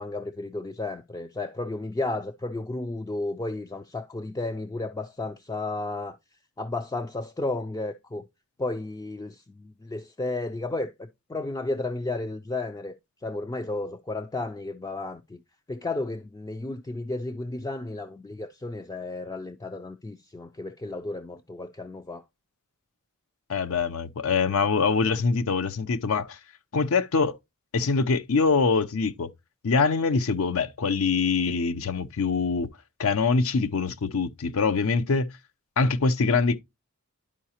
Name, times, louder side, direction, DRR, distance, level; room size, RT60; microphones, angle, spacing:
voice 1, 0.0-6.2 6.6-8.2 8.6-13.0 13.2-15.4 15.7-22.2, left 2 dB, 15° left, 0.3 m, -33 dB
voice 2, 23.5-26.4 26.7-27.4 27.7-29.3 29.6-32.7 33.0-35.3 35.8-36.6, left 4 dB, 65° left, 0.6 m, -24 dB
11.0 x 4.8 x 2.8 m
head